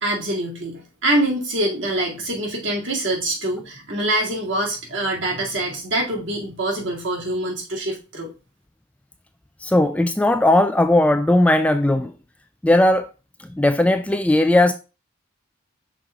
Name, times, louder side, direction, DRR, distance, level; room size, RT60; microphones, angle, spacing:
voice 1, 0.0-8.3, right 1 dB, 65° right, 2.1 m, -25 dB
voice 2, 9.6-12.1 12.6-13.1 13.6-14.7, left 1 dB, 5° left, 0.3 m, -17 dB
6.1 x 3.5 x 4.9 m
head